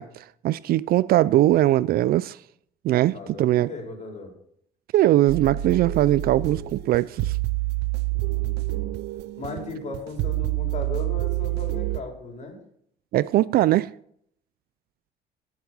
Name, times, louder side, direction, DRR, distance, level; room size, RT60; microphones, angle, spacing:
voice 1, 0.0-2.4 2.8-3.7 4.9-7.4 13.1-13.9, right 14 dB, 65° right, 0.4 m, -21 dB
voice 2, 3.1-4.3 8.1-8.9 9.4-12.6, left 2 dB, 45° left, 4.4 m, -37 dB
sound 1, 5.3-12.0, right 16 dB, 90° right, 0.7 m, -28 dB
17.0 x 7.2 x 6.2 m
cardioid pair, 110°, 17 cm